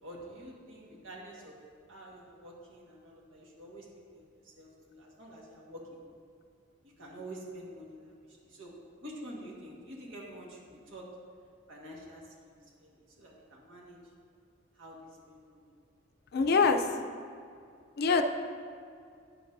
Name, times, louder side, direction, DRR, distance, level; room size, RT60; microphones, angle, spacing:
voice 1, 0.0-1.6 1.9-3.9 4.1-6.0 7.0-11.1 11.7-14.0 14.8-15.0 15.3-15.7, right 1 dB, 85° right, -3 dB, 1.6 m, -48 dB
voice 2, 16.3-17.0 18.0-18.2, left 4 dB, 55° left, 6 dB, 0.5 m, -24 dB
9.7 x 7.9 x 2.6 m, 2.3 s
head